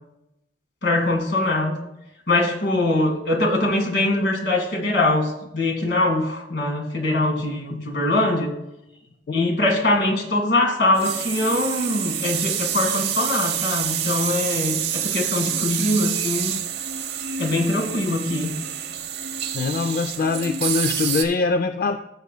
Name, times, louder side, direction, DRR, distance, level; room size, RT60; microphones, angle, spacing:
voice 1, 0.8-1.8 2.3-8.5 9.3-16.5 17.4-18.5, left 2 dB, 70° left, 2 dB, 1.8 m, -22 dB
sound 1, 10.9-21.2, right 9 dB, 65° right, 0.8 m, -27 dB
voice 2, 19.5-22.0, left 4 dB, 50° left, 9 dB, 0.4 m, -23 dB
16.5 x 6.7 x 2.2 m, 0.87 s
head